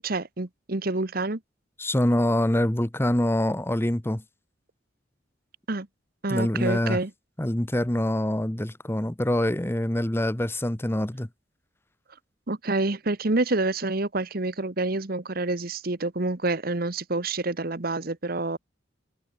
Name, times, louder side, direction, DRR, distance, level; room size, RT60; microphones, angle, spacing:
voice 1, 0.0-1.4 5.7-5.9 6.2-7.1 12.5-18.6, right 2 dB, 50° right, 1.3 m, -27 dB
voice 2, 1.8-4.2 6.3-7.0 7.4-11.3, left 1 dB, 15° left, 1.0 m, -25 dB
head